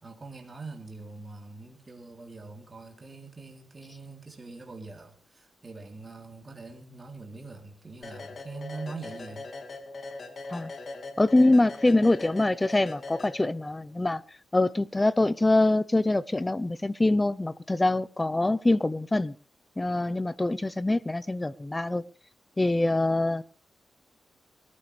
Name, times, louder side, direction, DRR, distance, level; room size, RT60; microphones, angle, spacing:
voice 1, 0.0-9.5, right 3 dB, 30° right, 2 dB, 3.4 m, -43 dB
sound 1, 8.0-13.8, left 3 dB, 50° left, 2.4 m, -41 dB
voice 2, 11.2-19.3 19.8-22.0 22.6-23.4, left 2 dB, 15° left, 18 dB, 0.7 m, -24 dB
21.0 x 14.0 x 3.4 m, 0.39 s
cardioid pair, 95°, 0 cm